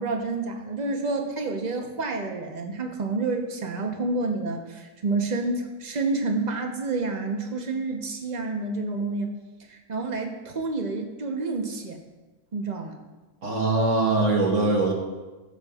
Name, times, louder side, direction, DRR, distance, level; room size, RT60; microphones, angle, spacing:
voice 1, 0.0-9.3 9.7-12.0 12.5-13.0, right 3 dB, 30° right, 2 dB, 0.9 m, -29 dB
voice 2, 13.4-14.9, right 2 dB, 50° right, -1 dB, 1.6 m, -22 dB
16.0 x 7.3 x 2.4 m, 1.2 s
omnidirectional pair, 1.7 m